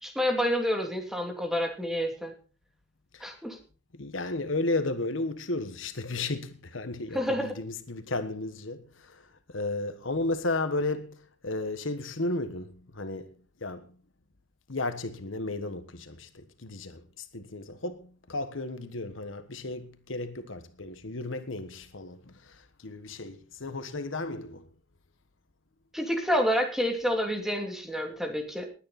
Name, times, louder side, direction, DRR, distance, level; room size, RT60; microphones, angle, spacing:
voice 1, 0.0-2.3 3.2-3.6 7.1-7.5 25.9-28.6, equal, ahead, 2.7 m, -28 dB
voice 2, 3.9-13.3 13.6-13.9 14.7-24.7, left 2 dB, 80° left, 1.4 m, -34 dB
19.5 x 9.7 x 4.2 m
head